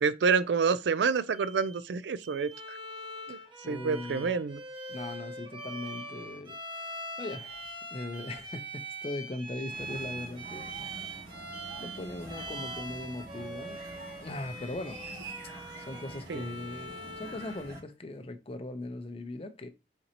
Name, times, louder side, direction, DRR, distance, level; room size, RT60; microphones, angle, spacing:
voice 1, 0.0-2.8 3.3-3.4 3.7-4.6 16.3-16.4, right 5 dB, 75° right, 0.4 m, -28 dB
Alarm, 1.3-1.8 2.2-2.6 3.9-4.3 4.7-5.2 5.6-6.1 7.3-7.8 8.1-8.6 9.0-9.4 10.7-11.2 11.5-12.0 12.4-12.8, right 8 dB, 75° left, 0.9 m, -47 dB
Bowed string instrument, 2.5-17.7, equal, 25° right, 0.8 m, -43 dB
voice 2, 3.6-4.3 4.9-11.1 11.8-13.8 14.2-15.0 15.8-19.7, left 2 dB, 35° left, 0.6 m, -40 dB
sound 1, 9.7-17.8, right 2 dB, 60° right, 2.1 m, -46 dB
4.3 x 3.9 x 2.8 m
head